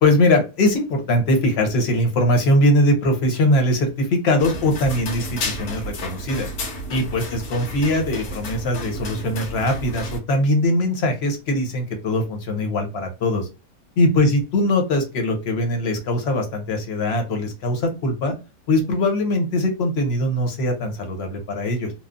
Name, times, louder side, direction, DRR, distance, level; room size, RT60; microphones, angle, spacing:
voice 1, 0.0-6.5 6.9-13.5 14.0-18.3 18.7-21.9, left 1 dB, 50° left, 4 dB, 0.9 m, -21 dB
sound 1, 4.4-10.2, equal, 85° left, 1.4 m, -31 dB
3.1 x 2.0 x 2.4 m, 0.30 s
omnidirectional pair, 1.7 m